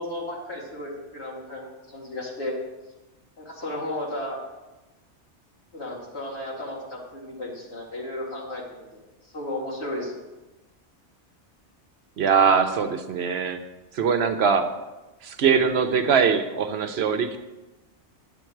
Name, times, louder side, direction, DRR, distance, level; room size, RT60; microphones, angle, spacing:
voice 1, 0.0-2.6 3.4-4.4 5.7-9.0 9.3-10.2 15.5-15.7, left 1 dB, 65° left, -3 dB, 2.6 m, -34 dB
voice 2, 12.2-13.6 13.9-14.7 15.2-17.4, right 6 dB, 65° right, 7 dB, 0.9 m, -22 dB
10.5 x 7.7 x 4.6 m, 1.1 s
omnidirectional pair, 1.2 m